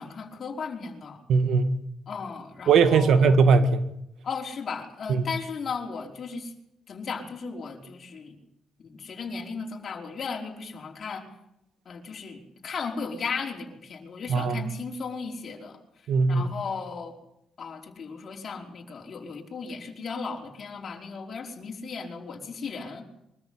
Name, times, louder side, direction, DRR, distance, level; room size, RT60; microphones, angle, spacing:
voice 1, 0.0-1.2 2.1-3.3 4.2-6.5 6.9-8.4 8.8-11.3 11.8-17.1 17.6-23.0, left 5 dB, 45° left, 1 dB, 5.0 m, -36 dB
voice 2, 1.3-1.8 2.7-3.9 5.1-5.2 14.3-14.6 16.1-16.5, right 5 dB, 70° right, 10 dB, 2.0 m, -20 dB
24.5 x 14.0 x 9.8 m, 0.80 s
cardioid pair, 105°, 0 cm